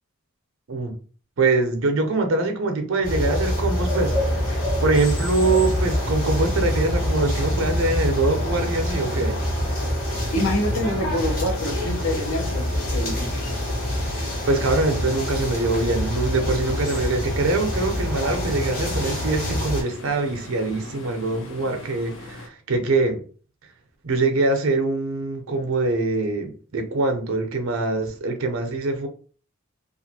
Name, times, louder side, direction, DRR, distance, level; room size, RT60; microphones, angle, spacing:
voice 1, 1.4-4.1 4.8-9.4 14.5-23.2 24.0-29.1, right 3 dB, 75° right, 0.5 m, -23 dB
sound 1, 3.0-19.8, left 1 dB, 40° left, 1.1 m, -25 dB
sound 2, 4.0-22.5, left 2 dB, 60° left, 0.4 m, -40 dB
voice 2, 10.3-13.6, left 1 dB, 85° left, 0.8 m, -27 dB
sound 3, 12.1-13.2 14.2-14.3 14.9-15.2 15.6-15.8 16.3-16.4 17.2-18.7 19.0-20.9, right 1 dB, 5° left, 0.5 m, -45 dB
2.6 x 2.4 x 2.7 m
head